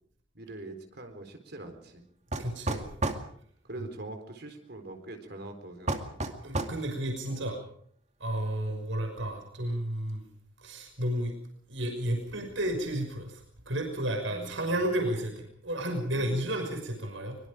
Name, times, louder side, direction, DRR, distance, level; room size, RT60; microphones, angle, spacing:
voice 1, 0.3-2.0 3.7-6.2 7.3-7.4 14.3-14.9 16.0-16.4, right 2 dB, 55° right, 6 dB, 4.1 m, -44 dB
sound 1, 2.3-3.3 5.9-6.8, right 2 dB, 35° right, 2.3 m, -31 dB
voice 2, 2.4-2.9 3.8-3.9 6.4-7.6 8.2-10.2 10.6-11.3 11.7-17.4, right 1 dB, 80° right, 4 dB, 5.9 m, -32 dB
24.5 x 23.5 x 5.0 m, 0.63 s
head